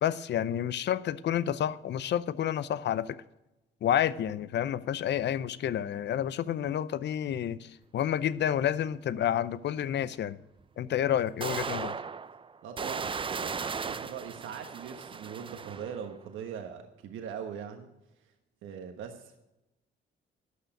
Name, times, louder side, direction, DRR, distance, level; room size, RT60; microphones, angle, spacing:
voice 1, 0.0-3.2 3.8-10.4 10.8-11.9, left 10 dB, 60° left, 0.6 m, -29 dB
sound 1, 8.7-8.8 10.6-10.7 11.4-16.1, right 5 dB, 25° right, 0.5 m, -36 dB
voice 2, 12.6-17.9 18.6-19.4, right 7 dB, 80° right, 1.3 m, -41 dB
11.5 x 6.6 x 9.0 m
cardioid pair, 90°, 20 cm